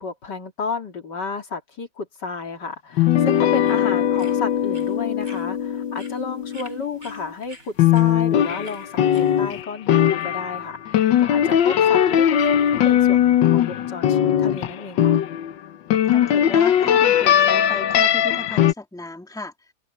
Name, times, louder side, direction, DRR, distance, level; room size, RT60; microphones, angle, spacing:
voice 1, 0.0-15.2, left 4 dB, 65° left, 3.0 m, -32 dB
sound 1, 3.0-7.3 7.8-15.5 15.9-18.7, left 10 dB, 85° left, 1.6 m, -19 dB
sound 2, 3.0-9.6, right 1 dB, 45° right, 8.2 m, -49 dB
voice 2, 16.1-19.7, left 2 dB, ahead, 2.3 m, -35 dB
omnidirectional pair, 2.0 m